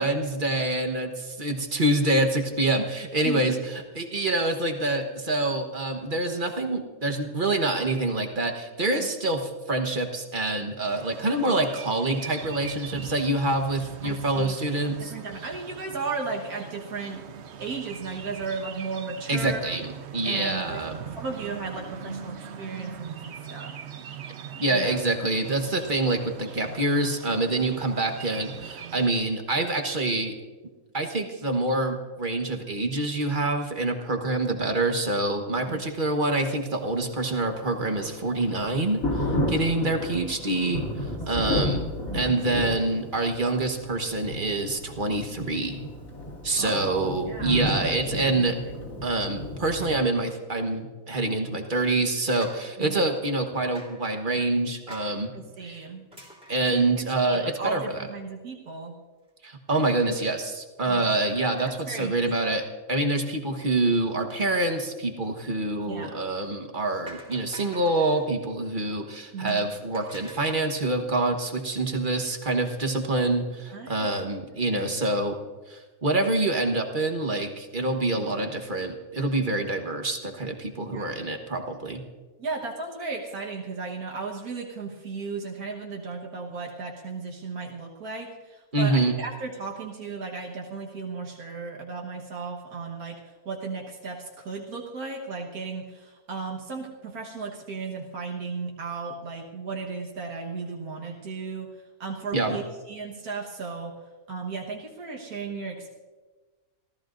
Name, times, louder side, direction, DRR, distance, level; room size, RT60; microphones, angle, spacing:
voice 1, 0.0-15.1 19.3-20.9 24.6-30.3 30.9-41.9 42.1-45.8 46.4-48.5 49.0-55.3 55.6-55.8 56.5-58.0 59.4-75.4 75.7-82.0 88.7-89.1 102.3-102.6, right 2 dB, 35° right, 4 dB, 1.4 m, -26 dB
sound 1, 10.8-29.1, right 8 dB, 55° right, 0.9 m, -41 dB
voice 2, 14.0-14.6 15.0-17.2 17.6-19.7 20.2-20.8 21.1-23.8 24.7-25.0 35.7-35.8 41.4-41.6 42.1-42.4 46.6-48.5 52.8-53.0 55.3-56.1 56.7-56.9 57.2-58.9 60.9-61.1 61.7-62.2 65.9-66.3 69.3-69.7 73.7-74.2 74.7-75.0 78.3-78.4 80.9-81.2 82.4-101.7 102.0-104.0 104.3-105.9, right 4 dB, 85° right, -1 dB, 1.8 m, -35 dB
Thunder, 37.1-49.9, left 1 dB, 65° left, 2.9 m, -32 dB
sound 2, 52.4-53.4 53.7-54.1 54.9-55.2 56.1-57.5 57.8-57.9 58.2-58.3 59.8-60.3 61.2-62.0 62.3-62.6 66.2-66.5 67.1-68.3 69.5-70.7, right 1 dB, 5° right, 3.2 m, -47 dB
27.5 x 14.5 x 2.6 m, 1.3 s
omnidirectional pair, 1.5 m